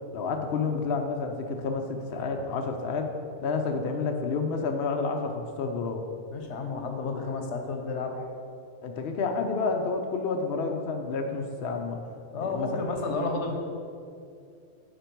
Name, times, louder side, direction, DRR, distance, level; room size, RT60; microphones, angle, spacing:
voice 1, 0.1-3.1 3.4-6.0 8.8-12.0 12.4-12.7, left 4 dB, 65° left, 3 dB, 0.8 m, -29 dB
voice 2, 6.3-8.2 12.3-13.6, left 3 dB, 85° left, 4 dB, 1.2 m, -31 dB
10.5 x 4.4 x 4.5 m, 2.5 s
omnidirectional pair, 1.2 m